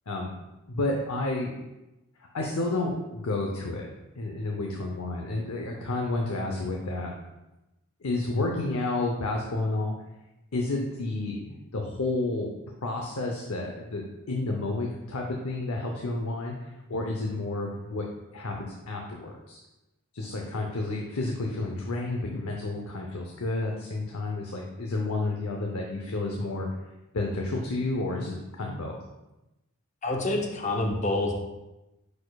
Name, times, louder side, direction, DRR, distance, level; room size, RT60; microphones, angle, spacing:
voice 1, 0.7-1.5 2.2-3.9 4.2-7.1 8.0-9.9 10.5-12.5 12.8-18.0 18.3-19.6 20.1-26.7 27.1-29.0, left 2 dB, 80° left, 0 dB, 0.7 m, -31 dB
voice 2, 30.0-31.3, left 2 dB, 30° left, 2 dB, 0.7 m, -27 dB
9.6 x 4.3 x 2.3 m, 0.99 s
head